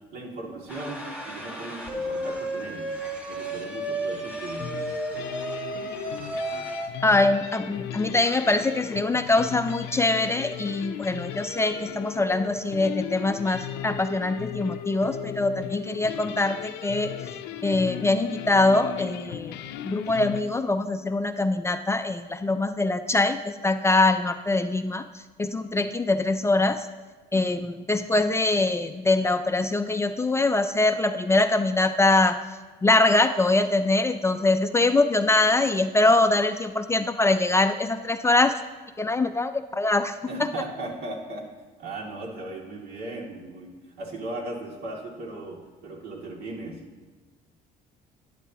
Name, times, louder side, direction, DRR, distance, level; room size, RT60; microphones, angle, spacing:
voice 1, 0.1-3.0 3.3-4.7 40.3-41.5 41.8-46.8, right 2 dB, 70° right, -2 dB, 2.5 m, -37 dB
sound 1, 0.7-6.9, right 1 dB, 5° right, 1.8 m, -33 dB
sound 2, 4.6-20.4, left 10 dB, 90° left, 0.6 m, -36 dB
voice 2, 7.0-17.1 17.6-19.6 19.8-25.0 25.4-26.9 27.3-32.4 32.8-38.5 39.0-40.2, left 2 dB, 15° left, 8 dB, 0.4 m, -23 dB
11.5 x 10.0 x 2.9 m, 1.4 s
cardioid pair, 110°, 17 cm